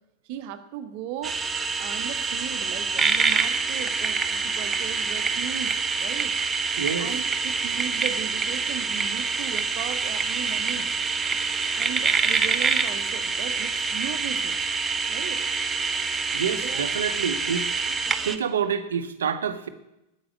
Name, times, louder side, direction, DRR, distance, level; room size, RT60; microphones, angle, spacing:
voice 1, 0.2-1.4 1.8-6.3 7.0-10.9 11.7-14.6 15.1-15.4 16.6-16.8, right 10 dB, 45° right, 9 dB, 1.1 m, -37 dB
sound 1, 1.2-18.4, right 4 dB, 15° right, 0.7 m, -26 dB
voice 2, 6.8-7.1 16.3-17.9 18.2-19.7, right 7 dB, 65° right, 11 dB, 0.9 m, -28 dB
8.7 x 8.4 x 8.3 m, 0.89 s
figure-of-eight pair, 90°, 0 cm